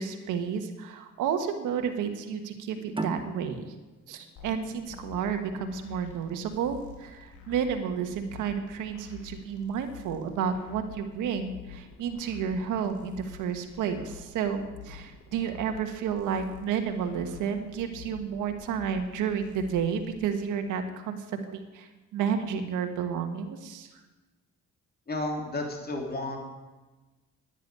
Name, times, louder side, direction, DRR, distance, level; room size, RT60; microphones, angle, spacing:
voice 1, 0.0-3.7 4.1-23.9, right 7 dB, 90° right, 6 dB, 1.5 m, -31 dB
sound 1, 2.9-6.2, right 2 dB, 15° right, 1.3 m, -39 dB
sound 2, 4.4-20.2, left 7 dB, 75° left, 3.6 m, -48 dB
voice 2, 25.1-26.4, left 2 dB, 30° left, 1 dB, 3.1 m, -32 dB
11.0 x 10.0 x 9.6 m, 1.2 s
cardioid pair, 90°, 30 cm